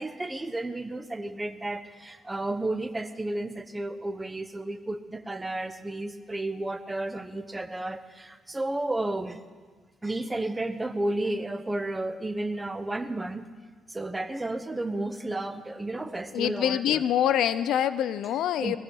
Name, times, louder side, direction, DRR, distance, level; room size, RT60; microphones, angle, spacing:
voice 1, 0.0-9.4 10.0-13.5 13.9-17.0 18.6-18.8, right 2 dB, 15° right, 9 dB, 1.0 m, -32 dB
voice 2, 16.3-18.8, left 10 dB, 80° left, 15 dB, 0.5 m, -25 dB
20.5 x 15.0 x 4.6 m, 1.5 s
cardioid pair, 90°, 0 cm